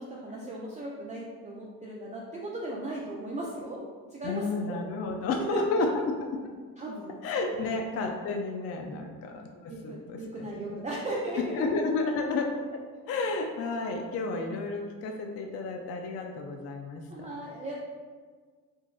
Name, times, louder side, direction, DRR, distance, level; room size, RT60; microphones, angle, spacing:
voice 1, 0.0-3.8 4.1-4.8 5.5-5.9 6.8-7.2 8.9-9.0 9.7-11.7 17.1-17.8, right 1 dB, 20° right, -4 dB, 0.4 m, -36 dB
voice 2, 4.2-5.9 6.3-6.4 7.2-10.5 11.5-12.8 13.1-17.0, left 3 dB, 40° left, 3 dB, 0.4 m, -31 dB
3.8 x 2.4 x 2.4 m, 1.5 s
supercardioid pair, 75°, 40 cm